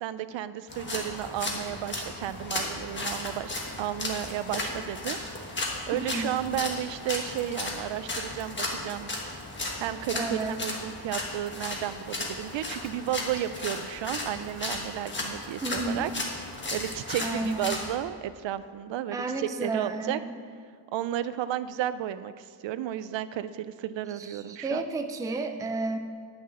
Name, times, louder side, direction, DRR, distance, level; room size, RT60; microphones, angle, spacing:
voice 1, 0.0-5.2 5.9-9.1 9.8-16.1 16.7-20.2 20.9-24.8, right 11 dB, 70° right, 14 dB, 0.5 m, -33 dB
sound 1, 0.7-17.9, left 2 dB, 25° left, 1.3 m, -35 dB
voice 2, 10.1-10.6 15.6-16.1 17.2-17.7 19.1-20.3 24.2-26.0, right 2 dB, 10° right, 6 dB, 0.4 m, -31 dB
10.5 x 6.2 x 7.4 m, 2.1 s
wide cardioid pair, 170°, 47 cm